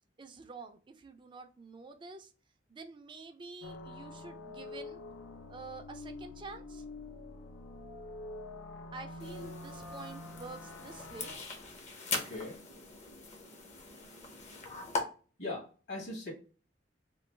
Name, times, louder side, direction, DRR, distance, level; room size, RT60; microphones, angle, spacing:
voice 1, 0.2-2.3 2.7-5.0 5.5-6.8 8.9-11.3, right 3 dB, 25° right, 6 dB, 0.4 m, -48 dB
sound 1, 3.6-11.4, left 2 dB, 90° left, 0.5 m, -46 dB
sound 2, 9.2-15.0, left 3 dB, 40° left, 0.6 m, -41 dB
voice 2, 12.1-12.6 15.4-16.3, left 2 dB, 65° left, -5 dB, 1.5 m, -40 dB
3.0 x 2.3 x 3.2 m, 0.37 s
head